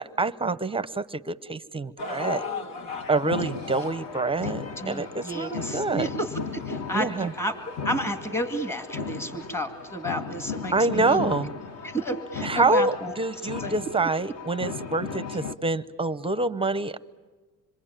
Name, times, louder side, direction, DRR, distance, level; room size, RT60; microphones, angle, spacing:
voice 1, 0.0-2.4 3.1-6.1 6.9-7.3 10.7-11.5 12.4-17.0, right 3 dB, 15° right, 15 dB, 0.8 m, -26 dB
sound 1, 2.0-8.2 8.9-9.0 9.7-9.8, left 4 dB, 80° left, 2.8 m, -39 dB
sound 2, 2.9-15.5, left 5 dB, 45° left, 1.5 m, -36 dB
voice 2, 4.4-11.3 11.8-13.1 13.6-13.7, equal, 5° left, 7 dB, 2.1 m, -32 dB
27.0 x 24.0 x 9.0 m, 1.3 s
cardioid pair, 125°, 35 cm